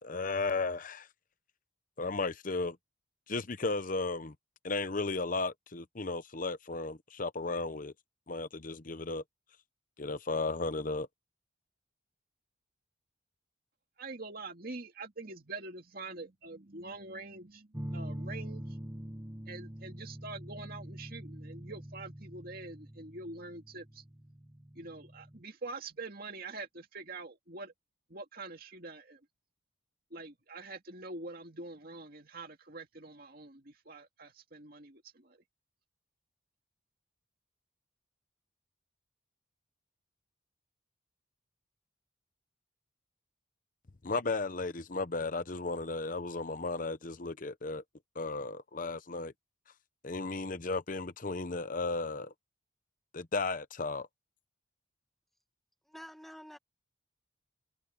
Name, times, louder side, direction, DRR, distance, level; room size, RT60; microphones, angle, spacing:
voice 1, 0.0-1.1 2.0-2.8 3.3-4.3 4.6-7.9 8.3-9.2 10.0-11.1 44.0-47.8 48.2-49.3 50.0-52.3 53.1-54.1, left 3 dB, 40° left, 0.8 m, -34 dB
voice 2, 14.0-18.8 19.5-24.0 24.8-27.7 28.1-29.2 30.1-35.4, right 3 dB, 50° right, 2.3 m, -45 dB
sound 1, 17.7-25.4, equal, 15° right, 1.9 m, -44 dB
voice 3, 55.9-56.6, equal, ahead, 1.5 m, -48 dB
head